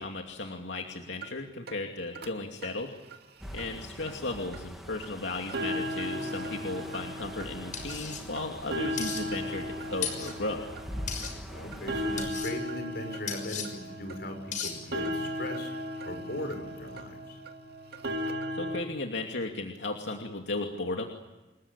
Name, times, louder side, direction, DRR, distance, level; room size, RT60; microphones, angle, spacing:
voice 1, 0.0-2.9 3.5-10.7 18.5-21.0, left 2 dB, 90° left, 2 dB, 2.6 m, -35 dB
sound 1, 1.2-1.3 1.7-1.8 2.1-2.3 2.6-2.7 3.1-3.2 3.6-3.7 4.1-4.2 4.5-4.6 5.0-5.1 5.4-18.8, equal, 60° right, 2.5 m, -36 dB
voice 2, 3.4-3.8 11.5-15.7 16.0-17.4, left 1 dB, 60° left, 5 dB, 6.2 m, -39 dB
sound 2, 3.4-12.3, equal, ahead, 3.2 m, -44 dB
sound 3, 7.7-8.2 9.0-9.2 10.0-10.3 11.1-11.3 12.2-12.5 13.3-13.7 14.5-14.7, left 7 dB, 45° left, 6.4 m, -35 dB
28.5 x 21.5 x 8.7 m, 1.1 s
head